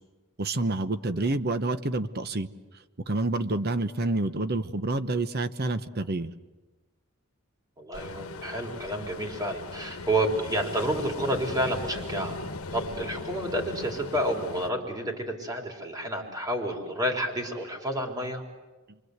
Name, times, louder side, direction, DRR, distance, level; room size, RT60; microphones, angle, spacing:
voice 1, 0.4-2.5 3.1-6.3, right 2 dB, 45° right, 11 dB, 1.0 m, -28 dB
voice 2, 7.8-12.4 12.7-18.4, right 1 dB, 20° right, 1 dB, 4.0 m, -30 dB
Ocean, 7.9-14.7, left 3 dB, 75° left, 1.4 m, -38 dB
29.0 x 24.5 x 8.1 m, 1.2 s
head